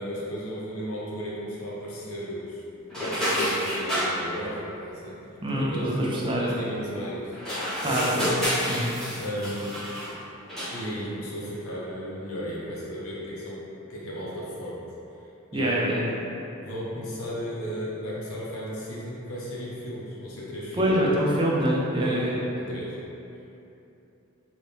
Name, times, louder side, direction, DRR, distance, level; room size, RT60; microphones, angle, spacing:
voice 1, 0.0-2.6 3.0-5.2 5.5-7.4 7.8-8.0 9.2-9.8 10.7-13.6 13.9-14.8 15.5-16.2 16.6-20.9 22.0-22.3 22.6-23.0, equal, 80° left, -6 dB, 0.7 m, -35 dB
sound 1, 2.9-4.1 7.3-10.1 10.5-10.8, equal, ahead, 0.9 m, -29 dB
voice 2, 5.4-6.5 7.8-8.9 15.5-16.0 20.8-22.4, equal, 25° right, -5 dB, 0.5 m, -25 dB
2.8 x 2.6 x 3.4 m, 2.9 s
head